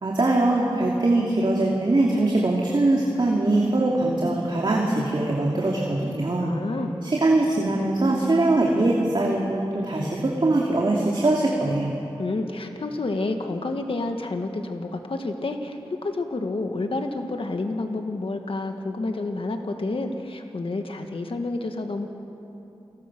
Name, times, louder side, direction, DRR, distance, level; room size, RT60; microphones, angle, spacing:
voice 1, 0.0-6.5 7.0-11.9, right 2 dB, 50° right, -3 dB, 2.7 m, -22 dB
voice 2, 6.4-7.0 12.2-22.1, left 2 dB, 65° left, 5 dB, 1.8 m, -29 dB
28.5 x 21.0 x 6.2 m, 3.0 s
wide cardioid pair, 95°, 10 cm